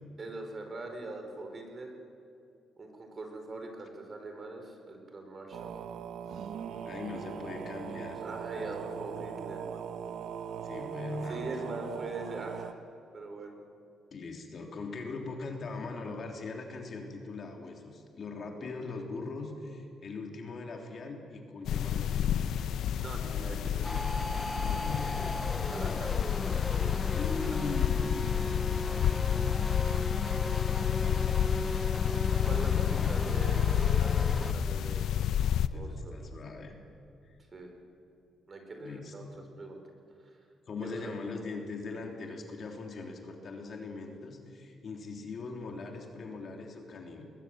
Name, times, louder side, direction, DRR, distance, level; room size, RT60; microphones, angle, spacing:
voice 1, 0.2-1.9 2.8-5.7 8.2-9.6 11.3-12.7 13.1-13.5 23.0-24.1 24.7-25.1 25.7-26.1 26.8-27.7 32.5-35.1 35.7-36.1 37.5-37.7 38.5-39.3 39.6-39.8 40.2-40.4 40.8-41.1, right 2 dB, 35° right, 4 dB, 4.5 m, -42 dB
sound 1, 5.5-12.7, right 8 dB, 75° right, 0.9 m, -40 dB
voice 2, 6.8-8.2 8.5-8.7 9.1-9.3 10.6-11.8 14.1-22.3 24.5-25.3 27.1-28.5 28.9-29.6 31.0-31.4 35.7-36.8 37.2-37.3 38.8-39.4 40.7-47.2, left 3 dB, 50° left, 1 dB, 3.4 m, -41 dB
sound 2, 21.6-35.7, left 9 dB, 75° left, 0.7 m, -29 dB
sound 3, 23.8-34.5, left 1 dB, 5° left, 0.6 m, -37 dB
21.0 x 20.5 x 7.6 m, 2.5 s
cardioid pair, 90°, 0 cm